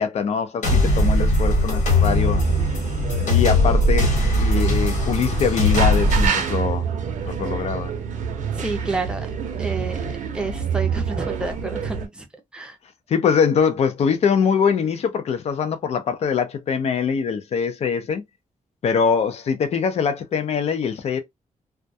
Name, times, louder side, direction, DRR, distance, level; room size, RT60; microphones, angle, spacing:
voice 1, 0.0-2.4 3.3-7.0 7.3-7.9 13.1-18.2 18.8-21.2, left 6 dB, 55° left, 0.5 m, -23 dB
sound 1, 0.6-6.3, left 1 dB, 80° left, 1.2 m, -19 dB
sound 2, 2.1-12.1, right 7 dB, 85° right, 0.6 m, -27 dB
voice 2, 8.5-9.3 9.6-12.2 12.5-12.7, right 3 dB, 5° right, 0.5 m, -30 dB
2.2 x 2.1 x 2.6 m
wide cardioid pair, 160°, 13 cm